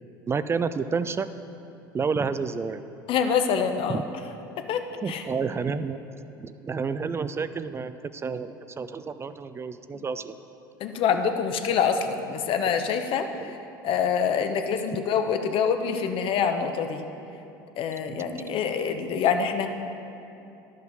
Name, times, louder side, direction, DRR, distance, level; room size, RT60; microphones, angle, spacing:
voice 1, 0.3-1.3 1.9-2.8 3.9-4.0 5.0-6.0 6.4-10.4 13.4-13.5 18.1-18.3, right 5 dB, 20° right, 12 dB, 0.4 m, -30 dB
voice 2, 3.1-4.0 4.6-5.2 9.9-10.0 10.8-13.6 13.8-17.0 17.8-19.7, left 7 dB, 50° left, 7 dB, 0.9 m, -26 dB
12.0 x 5.6 x 6.4 m, 2.8 s
hypercardioid pair, 80°, 12 cm